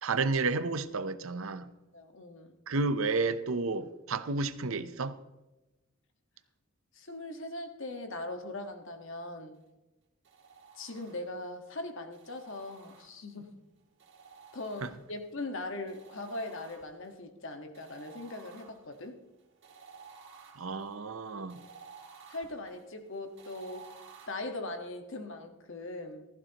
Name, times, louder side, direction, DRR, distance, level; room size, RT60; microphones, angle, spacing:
voice 1, 0.0-1.7 2.7-5.2 14.8-14.9 20.6-21.6, right 3 dB, 75° right, 0.8 m, -31 dB
voice 2, 1.9-2.6 6.9-9.6 10.7-13.6 14.5-19.2 22.3-23.8 24.3-26.3, left 2 dB, 65° left, 1.5 m, -40 dB
sound 1, 10.2-11.5 12.1-13.4 14.0-15.3 15.9-17.2 17.7-24.3, right 5 dB, 55° right, 2.9 m, -54 dB
15.5 x 14.5 x 3.0 m
head